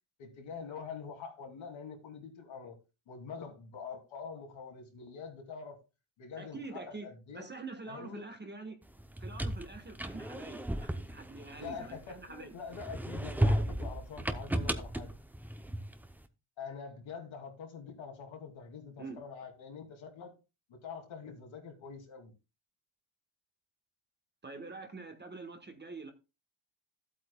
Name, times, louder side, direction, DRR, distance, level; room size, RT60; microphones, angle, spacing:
voice 1, 0.2-2.8 3.1-5.8 6.2-7.5 7.9-8.3 11.6-15.1 16.6-20.3 20.7-22.3, left 5 dB, 65° left, 2.8 m, -45 dB
voice 2, 6.4-8.8 9.2-12.5 19.0-19.2 24.4-26.1, right 3 dB, 20° right, 1.3 m, -45 dB
sound 1, 9.0-12.2 12.7-16.1, right 1 dB, 5° right, 0.6 m, -34 dB
14.0 x 8.5 x 2.3 m
cardioid pair, 140°, 49 cm